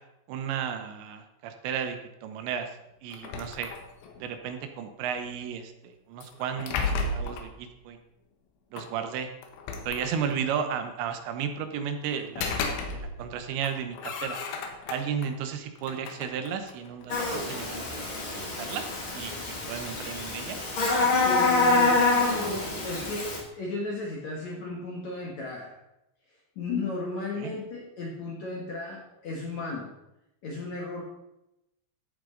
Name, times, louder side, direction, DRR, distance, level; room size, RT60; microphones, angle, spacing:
voice 1, 0.3-2.7 3.0-3.7 4.2-8.0 8.7-9.3 9.8-14.4 14.9-18.0 18.3-18.8 19.1-20.6 27.4-27.5, right 7 dB, 80° right, 7 dB, 3.1 m, -34 dB
sound 1, 3.1-4.2 6.2-7.5 8.8-8.9 9.4-10.5 12.1-13.3 13.6-15.3 15.8-17.4, left 4 dB, 85° left, 3.6 m, -34 dB
Buzz, 17.1-23.4, left 3 dB, 40° left, 2.2 m, -26 dB
voice 2, 21.2-22.1 22.4-25.8 26.6-29.9 30.4-31.0, left 3 dB, 55° left, -2 dB, 2.1 m, -34 dB
14.0 x 8.7 x 3.9 m, 0.88 s
omnidirectional pair, 5.2 m